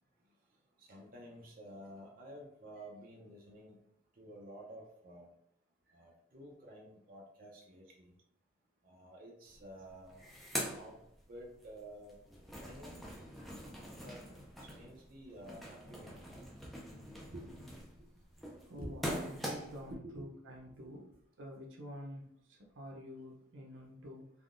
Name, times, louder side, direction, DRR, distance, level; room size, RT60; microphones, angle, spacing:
voice 1, 0.8-3.8 4.2-5.3 5.9-8.1 8.8-10.3 10.6-11.0 11.3-12.2 12.6-13.0 14.0-14.2 14.6-16.8 17.3-17.4 18.0-18.1 18.8-18.9 19.9-20.3 20.8-21.0, right 1 dB, 45° right, -1 dB, 0.6 m, -51 dB
sound 1, 9.5-9.6 9.9-11.7 12.0-19.9, equal, ahead, 0.4 m, -44 dB
voice 2, 18.6-21.1 21.4-24.3, equal, 85° right, 0 dB, 0.7 m, -48 dB
3.4 x 2.2 x 2.5 m, 0.70 s
head